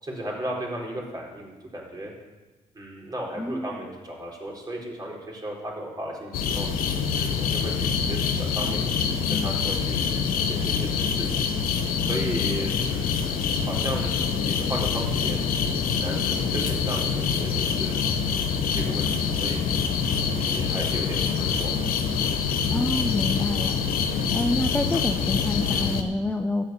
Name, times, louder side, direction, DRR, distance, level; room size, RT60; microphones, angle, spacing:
voice 1, 0.0-2.1 2.7-6.7 7.2-8.9 9.3-10.0 10.4-11.5 12.0-15.4 15.9-18.3 18.8-19.6 20.2-21.9, right 1 dB, 25° right, -2 dB, 4.1 m, -35 dB
voice 2, 3.4-3.8 22.7-23.8 24.3-26.7, left 1 dB, 10° left, 5 dB, 0.7 m, -27 dB
sound 1, 6.3-26.0, left 6 dB, 75° left, 1.1 m, -25 dB
13.0 x 5.4 x 8.8 m, 1.2 s
cardioid pair, 85°, 15 cm